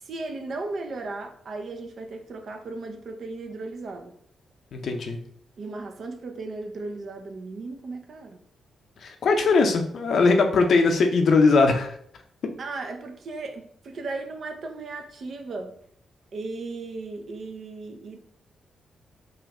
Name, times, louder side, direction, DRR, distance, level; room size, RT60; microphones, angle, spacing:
voice 1, 0.0-4.1 5.6-8.4 12.6-15.8 16.3-18.2, right 3 dB, 65° right, 5 dB, 0.6 m, -36 dB
voice 2, 4.7-5.2 9.0-12.0, left 4 dB, 65° left, 5 dB, 0.6 m, -20 dB
3.8 x 2.5 x 3.3 m, 0.64 s
supercardioid pair, 45°, 0 cm